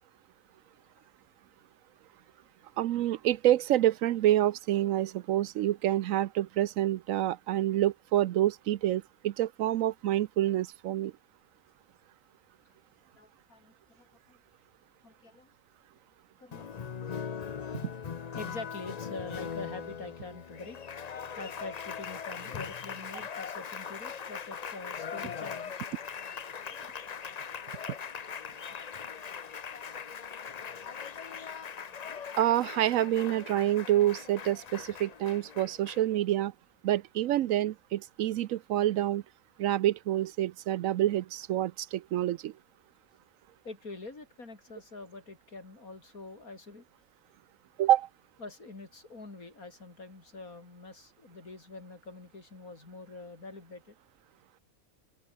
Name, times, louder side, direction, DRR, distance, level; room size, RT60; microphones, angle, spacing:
voice 1, 2.8-11.1 32.4-36.5 36.8-39.2 39.6-42.5 47.8-48.1, right 13 dB, 75° right, 1.0 m, -27 dB
voice 2, 13.1-14.4 15.0-15.5 16.4-17.1 18.3-20.8 21.4-25.9 43.6-46.8 48.4-54.0, left 3 dB, 85° left, 4.6 m, -45 dB
Applause, 16.5-36.2, left 7 dB, 40° left, 0.6 m, -40 dB
open air
omnidirectional pair, 1.5 m